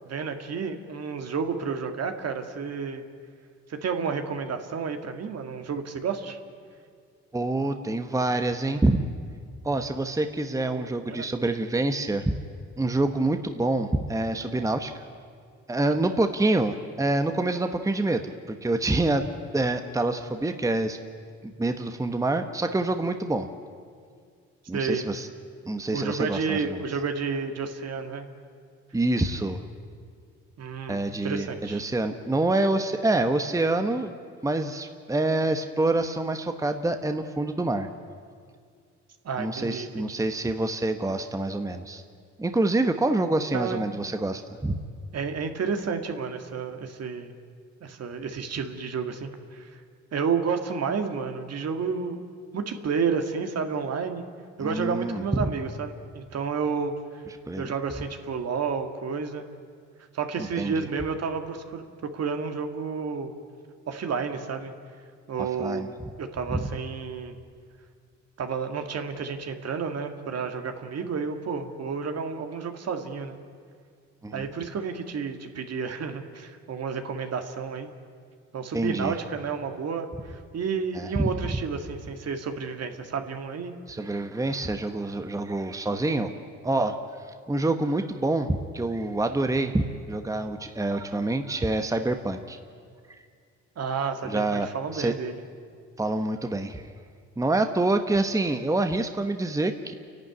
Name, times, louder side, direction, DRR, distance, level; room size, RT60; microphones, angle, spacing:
voice 1, 0.0-3.0 3.7-6.4 10.7-11.3 24.7-25.1 25.9-28.3 30.6-31.8 39.2-40.2 43.5-43.8 45.1-47.3 47.8-49.8 50.1-52.2 52.5-54.2 54.6-57.0 57.6-59.5 60.1-63.3 63.9-64.7 65.3-65.9 66.2-67.4 68.4-73.4 74.3-77.9 78.5-83.7 93.8-95.4, right 5 dB, 55° right, 6 dB, 2.0 m, -31 dB
voice 2, 7.3-9.0 9.6-12.4 12.8-15.0 15.7-19.3 19.5-21.0 21.4-23.5 24.7-25.3 25.7-26.8 28.9-29.6 30.9-34.1 34.4-37.9 39.4-42.0 42.4-44.8 54.6-55.4 57.5-57.7 60.4-60.9 65.4-65.9 66.5-66.6 74.2-74.5 78.7-79.1 80.9-81.3 83.9-86.3 86.6-87.0 87.5-92.6 93.1-93.2 94.2-95.1 96.0-96.9 97.4-99.9, right 2 dB, 10° right, 7 dB, 1.1 m, -26 dB
29.0 x 12.0 x 9.5 m, 2.1 s
cardioid pair, 90°, 30 cm